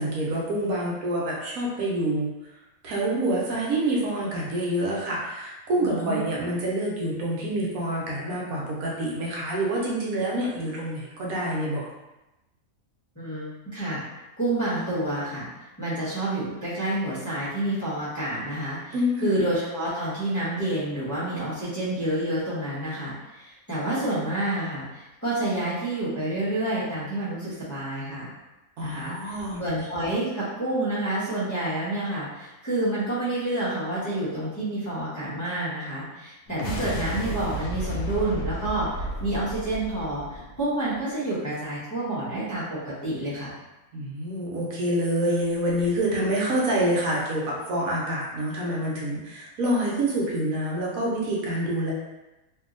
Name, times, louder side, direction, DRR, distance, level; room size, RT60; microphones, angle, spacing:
voice 1, 0.0-2.3 2.8-11.9 18.9-19.3 28.8-29.6 43.9-51.9, right 1 dB, 75° right, -4 dB, 1.2 m, -27 dB
voice 2, 5.8-6.2 13.2-14.0 14.4-15.5 15.8-28.3 28.8-29.1 29.6-43.5, right 1 dB, 15° left, -11 dB, 0.8 m, -29 dB
sound 1, 36.5-41.0, equal, 65° left, 0.7 m, -33 dB
2.8 x 2.6 x 2.5 m, 1.0 s
omnidirectional pair, 1.5 m